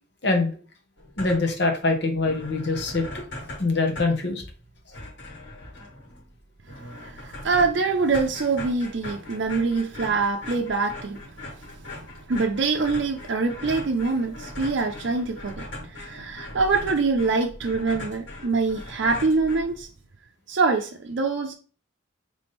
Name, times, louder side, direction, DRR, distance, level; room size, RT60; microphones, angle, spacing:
sound 1, 1.0-1.7 2.0-2.1 2.2-20.1, left 1 dB, 80° left, 2.0 m, -40 dB
voice 1, 1.2-3.0 3.6-4.4, left 3 dB, 65° left, 1.2 m, -23 dB
voice 2, 7.0-11.2 12.3-19.9 20.5-21.5, right 4 dB, 65° right, 0.5 m, -24 dB
3.5 x 3.4 x 4.0 m
head